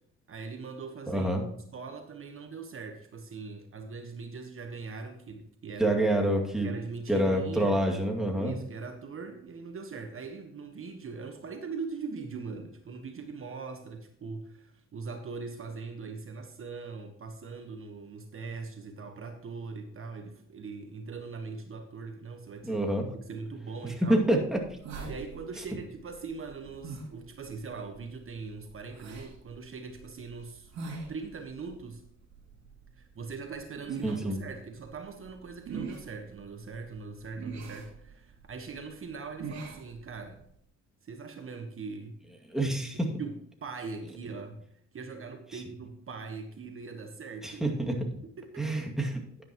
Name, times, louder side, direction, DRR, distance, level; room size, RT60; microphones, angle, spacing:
voice 1, 0.3-1.3 1.7-6.0 6.6-7.8 8.4-22.8 23.1-24.2 25.1-30.7 31.1-32.0 33.0-40.4 41.0-42.2 43.2-43.3 43.6-44.6 44.9-47.7 48.2-48.9, right 4 dB, 45° right, 5 dB, 1.3 m, -41 dB
voice 2, 1.1-1.4 5.8-6.7 7.1-8.5 22.6-23.1 24.1-24.6 34.0-34.4 42.5-43.1 45.5-45.6 47.4-48.2 48.6-49.2, right 1 dB, ahead, 0 dB, 2.3 m, -27 dB
sound 1, 24.0-40.6, right 5 dB, 65° right, 2.9 m, -45 dB
11.0 x 10.0 x 3.0 m, 0.70 s
cardioid pair, 90°, 30 cm